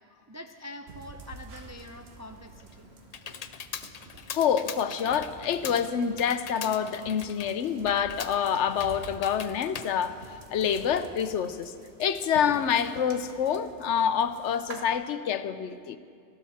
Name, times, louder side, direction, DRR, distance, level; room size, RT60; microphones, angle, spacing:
voice 1, 0.3-2.9, left 1 dB, 20° right, 5 dB, 0.4 m, -44 dB
sound 1, 0.9-14.8, right 3 dB, 65° right, 1.5 m, -48 dB
Computer keyboard, 2.3-10.9, left 7 dB, 50° left, 0.5 m, -42 dB
voice 2, 4.3-10.2 10.5-11.7 12.0-16.0, left 8 dB, 85° left, 11 dB, 1.0 m, -27 dB
19.0 x 14.0 x 4.3 m, 2.3 s
omnidirectional pair, 1.2 m